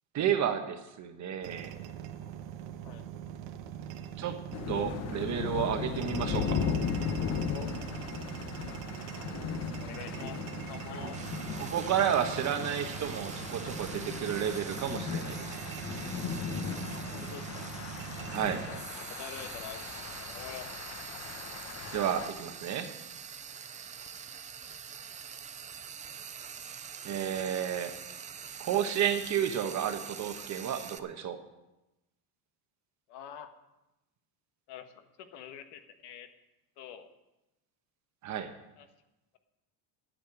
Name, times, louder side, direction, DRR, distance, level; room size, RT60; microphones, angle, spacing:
voice 1, 0.1-1.7 4.2-4.4 4.7-6.6 11.0-11.1 11.6-15.6 18.3-18.6 21.9-22.9 27.0-27.9 28.6-31.4 38.2-38.5, right 9 dB, 40° right, 7 dB, 1.2 m, -31 dB
sound 1, 1.4-18.8, right 10 dB, 85° right, 1.2 m, -42 dB
sound 2, 4.5-22.3, left 6 dB, 35° left, 1.1 m, -37 dB
voice 2, 9.7-11.2 16.9-17.7 18.7-18.8 19.2-21.0 33.1-33.5 34.7-36.3 36.8-37.1 38.8-38.9, left 9 dB, 60° left, 8 dB, 1.4 m, -46 dB
Frying (food), 11.1-31.0, right 7 dB, 20° right, 0.4 m, -45 dB
11.0 x 8.8 x 8.0 m, 0.98 s
cardioid pair, 155°, 45 cm